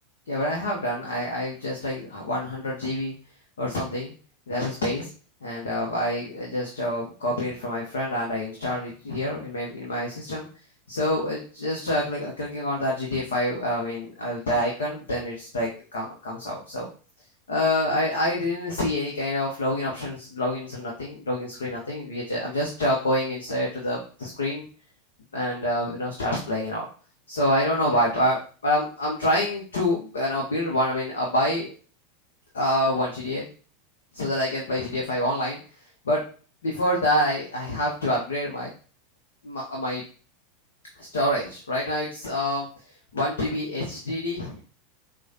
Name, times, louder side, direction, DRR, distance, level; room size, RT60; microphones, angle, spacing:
voice 1, 0.3-3.1 3.6-4.1 4.5-5.1 5.4-10.5 10.9-16.9 17.5-24.6 25.3-26.9 27.3-31.7 32.5-33.4 34.1-35.6 36.0-36.2 36.6-38.7 39.4-40.0 41.0-42.7 43.1-44.6, left 1 dB, 75° left, -2 dB, 0.7 m, -27 dB
4.7 x 2.2 x 2.7 m, 0.39 s
figure-of-eight pair, 85°, 0 cm